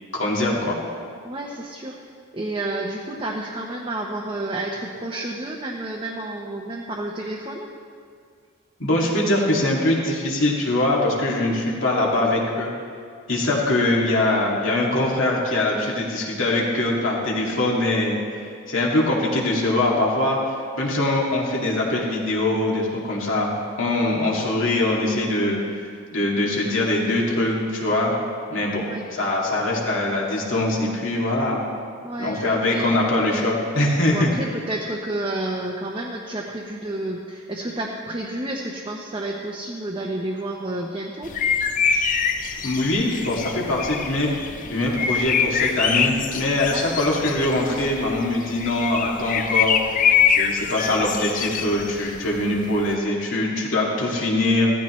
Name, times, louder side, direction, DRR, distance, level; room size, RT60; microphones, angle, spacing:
voice 1, 0.1-0.8 8.8-12.7 13.3-18.2 18.7-23.5 23.8-25.6 26.1-28.1 28.5-28.8 29.1-31.6 32.2-34.3 42.6-44.4 44.6-54.7, left 1 dB, 65° left, -3 dB, 2.2 m, -22 dB
voice 2, 1.2-2.0 2.3-7.7 28.9-29.1 32.0-32.8 34.1-41.3 46.7-47.0, right 1 dB, 25° right, -3 dB, 0.8 m, -30 dB
sound 1, 41.2-52.9, left 7 dB, 40° left, 0.5 m, -24 dB
15.5 x 14.0 x 3.2 m, 2.2 s
head